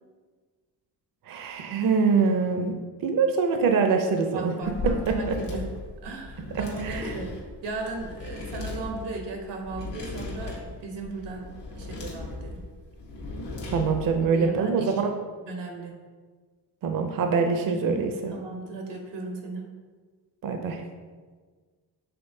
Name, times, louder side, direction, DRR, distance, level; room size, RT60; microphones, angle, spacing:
voice 1, 1.3-2.7 3.0-4.5 4.8-4.9 5.3-5.4 6.8-7.1 13.7-15.1 16.8-18.3 20.4-20.8, right 5 dB, 55° right, 4 dB, 0.5 m, -24 dB
voice 2, 4.3-5.7 6.0-12.6 14.2-15.0 15.5-16.0 18.3-19.7, right 3 dB, 90° right, 2 dB, 0.9 m, -36 dB
sound 1, 4.6-14.2, left 3 dB, 80° left, 1.2 m, -37 dB
5.8 x 3.3 x 2.6 m, 1.5 s
cardioid pair, 95°, 42 cm